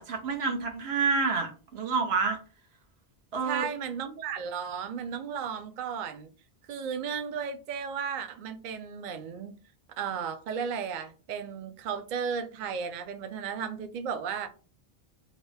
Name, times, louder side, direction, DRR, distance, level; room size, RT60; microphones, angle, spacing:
voice 1, 0.0-2.4 3.3-3.7, right 4 dB, 85° right, 3 dB, 1.1 m, -28 dB
voice 2, 3.4-6.3 6.7-9.6 10.0-14.5, right 7 dB, 60° right, 8 dB, 0.6 m, -34 dB
2.9 x 2.6 x 3.3 m, 0.35 s
omnidirectional pair, 1.0 m